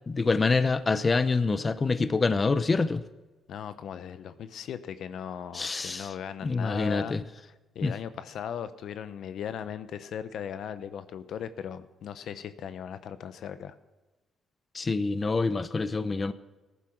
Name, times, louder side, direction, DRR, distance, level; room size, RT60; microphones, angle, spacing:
voice 1, 0.1-3.0 5.5-6.1 6.4-7.2 7.8-7.9 14.7-16.3, left 3 dB, 30° left, 13 dB, 0.7 m, -26 dB
voice 2, 3.5-7.2 7.4-13.7, left 8 dB, 70° left, 12 dB, 0.8 m, -38 dB
15.0 x 11.0 x 6.0 m, 1.2 s
cardioid pair, 90°, 0 cm